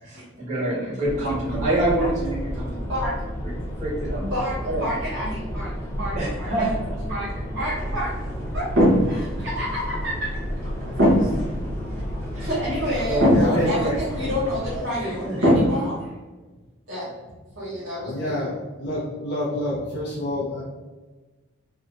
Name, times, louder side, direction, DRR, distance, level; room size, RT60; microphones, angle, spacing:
voice 1, 0.0-2.9 3.4-3.5 3.8-4.2 4.6-4.8 6.1-7.0 12.3-12.5 13.1-14.0 15.0-15.5, right 1 dB, 35° right, -10 dB, 1.3 m, -26 dB
sound 1, 1.1-14.8, equal, 10° left, 0.6 m, -31 dB
voice 2, 4.2-6.7 7.0-8.1 8.5-8.7 9.1-10.3 11.0-11.3 12.4-16.1 16.9-17.1 17.6-18.5, equal, 65° right, -11 dB, 1.2 m, -29 dB
sound 2, 7.7-15.7, equal, 90° right, 1.1 m, -23 dB
voice 3, 13.3-13.7 18.0-20.6, left 1 dB, 55° left, -6 dB, 0.7 m, -28 dB
3.3 x 2.8 x 2.5 m, 1.2 s
head